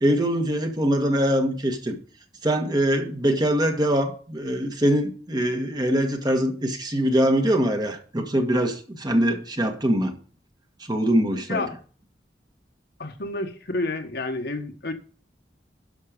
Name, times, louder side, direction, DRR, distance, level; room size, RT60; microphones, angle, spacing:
voice 1, 0.0-2.0 2.4-10.1 10.9-11.6, equal, 25° right, 1.6 m, -23 dB
voice 2, 13.0-14.9, left 2 dB, 65° left, 1.5 m, -29 dB
12.0 x 5.8 x 5.2 m
head